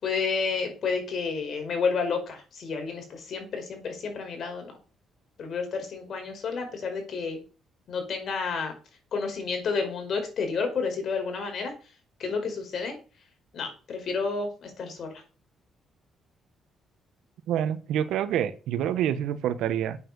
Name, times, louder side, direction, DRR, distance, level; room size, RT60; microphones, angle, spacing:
voice 1, 0.0-4.7 5.4-7.4 7.9-8.7 9.1-11.7 12.2-13.0 13.5-15.2, left 5 dB, 60° left, 4 dB, 4.9 m, -30 dB
voice 2, 17.5-20.0, right 10 dB, 85° right, 13 dB, 1.1 m, -27 dB
8.6 x 7.5 x 6.8 m, 0.36 s
cardioid pair, 90°, 0 cm